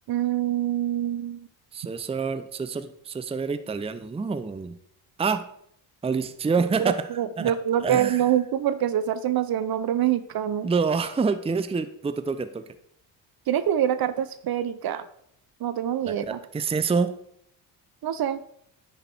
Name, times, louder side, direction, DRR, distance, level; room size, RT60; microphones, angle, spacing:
voice 1, 0.1-1.5 6.8-10.7 13.5-15.0 15.6-16.4 18.0-18.4, right 10 dB, 45° right, 13 dB, 0.7 m, -25 dB
voice 2, 1.7-4.7 5.2-5.4 6.0-7.5 7.8-8.2 10.6-12.6 16.1-17.1, right 5 dB, 10° right, 11 dB, 0.6 m, -27 dB
10.0 x 5.1 x 4.6 m, 0.69 s
hypercardioid pair, 60°, 50 cm